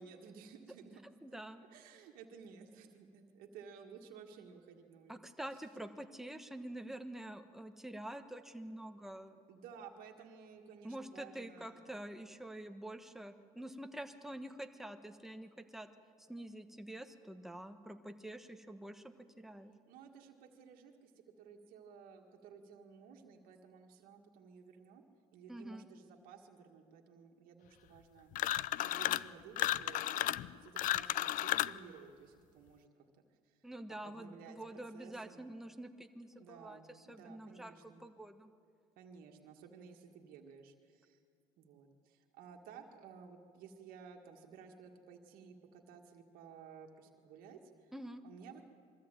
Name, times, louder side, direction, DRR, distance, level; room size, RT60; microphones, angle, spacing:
voice 1, 0.0-1.0 1.3-5.2 9.5-11.9 19.9-25.0 25.3-28.3 28.8-32.9 33.4-35.5 36.4-38.1 39.0-41.2 41.6-47.9 48.2-48.7, right 6 dB, 85° right, 2 dB, 1.8 m, -55 dB
voice 2, 1.2-1.7 5.1-9.4 10.8-15.9 16.2-19.7 25.5-25.9 33.6-36.8 37.1-38.5 47.9-48.2, right 1 dB, ahead, 7 dB, 1.3 m, -47 dB
sound 1, 28.3-29.3 29.6-31.8, left 14 dB, 65° left, 0.4 m, -33 dB
22.0 x 14.0 x 8.9 m, 2.2 s
cardioid pair, 95°, 15 cm